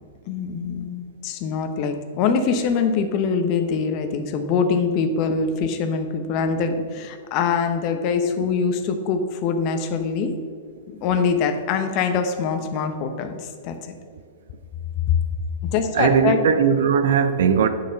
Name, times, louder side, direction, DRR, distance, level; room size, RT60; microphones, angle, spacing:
voice 1, 0.3-10.3 10.9-13.7 15.1-15.2 15.6-16.4, left 5 dB, 45° left, 1.0 m, -23 dB
voice 2, 15.9-17.7, right 7 dB, 70° right, 0.7 m, -18 dB
8.6 x 6.1 x 5.3 m
hypercardioid pair, 105°, 0 cm